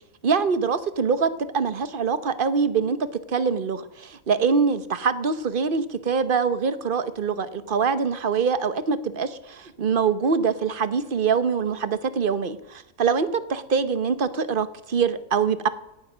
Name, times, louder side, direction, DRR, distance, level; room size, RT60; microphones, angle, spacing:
voice 1, 0.2-3.0 3.3-15.7, right 5 dB, 40° right, 13 dB, 1.1 m, -24 dB
17.5 x 12.0 x 6.2 m, 0.88 s
omnidirectional pair, 1.5 m